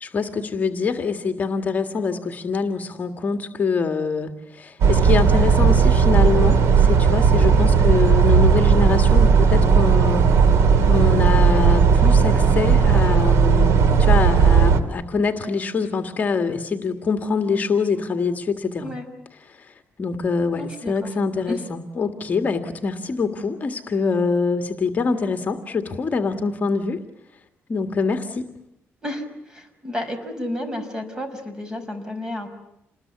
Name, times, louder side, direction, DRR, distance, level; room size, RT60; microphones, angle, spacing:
voice 1, 0.0-10.6 10.9-18.9 19.4-27.0 27.7-28.5, left 4 dB, 35° left, 6 dB, 1.9 m, -24 dB
sound 1, 4.8-14.8, right 6 dB, 85° right, 2.6 m, -15 dB
voice 2, 20.5-21.1 21.5-21.6 29.0-32.5, left 1 dB, 15° right, 7 dB, 5.5 m, -31 dB
28.5 x 20.5 x 9.5 m, 0.86 s
cardioid pair, 125°, 5 cm